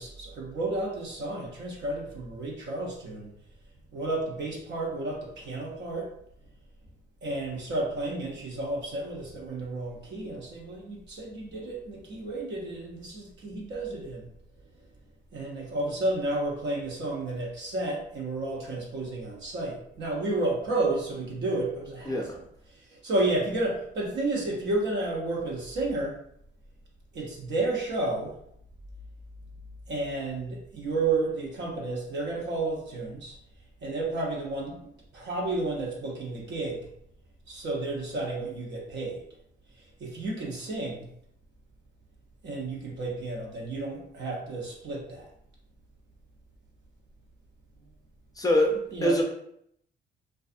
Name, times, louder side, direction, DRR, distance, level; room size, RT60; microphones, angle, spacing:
voice 1, 0.0-3.3 3.9-6.1 7.2-14.3 15.3-22.2 22.9-26.2 27.1-28.3 29.9-33.3 33.8-36.9 37.5-39.2 40.0-41.1 42.4-45.3 48.9-49.2, right 2 dB, 60° right, -1 dB, 0.8 m, -31 dB
voice 2, 22.1-22.4 48.4-49.2, equal, 20° left, 1 dB, 0.5 m, -24 dB
2.5 x 2.4 x 2.4 m, 0.72 s
cardioid pair, 90°, 20 cm